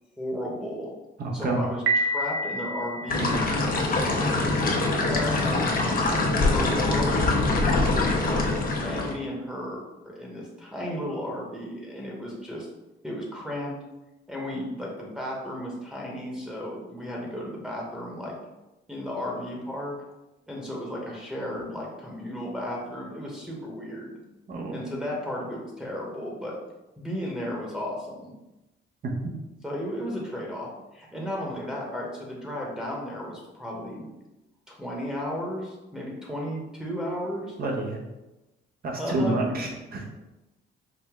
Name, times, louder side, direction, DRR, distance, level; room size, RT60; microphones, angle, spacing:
voice 1, 0.2-0.9 1.3-3.4 3.9-4.2 4.7-5.4 6.4-8.5 8.8-12.7 13.0-13.7 14.3-18.3 18.9-19.9 20.5-24.1 24.7-26.6 27.0-28.3 29.6-34.1 34.7-37.6 39.0-39.4, equal, 5° right, -4 dB, 1.0 m, -34 dB
voice 2, 1.2-1.6 24.5-24.8 37.6-38.0 38.8-40.0, right 2 dB, 50° right, 0 dB, 0.9 m, -28 dB
Piano, 1.9-3.8, right 2 dB, 80° right, 0.5 m, -28 dB
sound 1, 3.1-9.1, left 2 dB, 45° left, 0.7 m, -24 dB
4.9 x 2.1 x 3.6 m, 1.0 s
cardioid pair, 90°, 20 cm